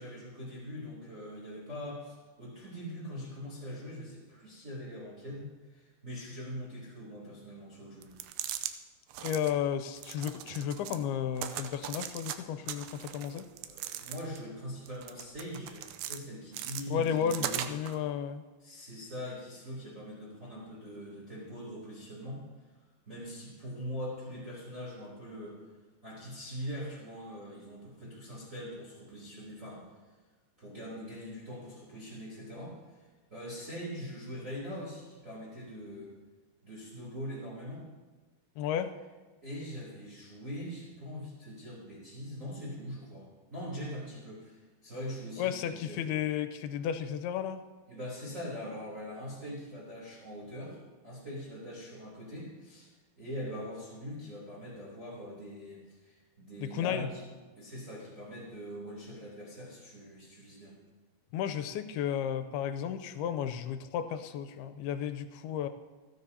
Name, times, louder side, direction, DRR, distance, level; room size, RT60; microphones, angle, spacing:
voice 1, 0.0-8.1 13.6-17.7 18.6-22.4 23.1-25.6 26.0-29.8 30.6-36.1 36.6-37.9 39.4-46.0 47.9-52.9 53.2-57.2 57.5-60.7, equal, 20° right, -6 dB, 3.4 m, -42 dB
sound 1, 8.0-8.7 9.1-9.5 10.0-11.0 11.4-12.4 12.7-14.5 14.9-16.2 16.5-18.0, right 11 dB, 90° right, 2.6 m, -39 dB
voice 2, 9.2-13.5 16.9-18.4 38.6-38.9 45.4-47.6 56.6-57.1 61.3-65.7, left 9 dB, 85° left, 9 dB, 2.7 m, -33 dB
29.0 x 9.9 x 2.8 m, 1.3 s
omnidirectional pair, 4.5 m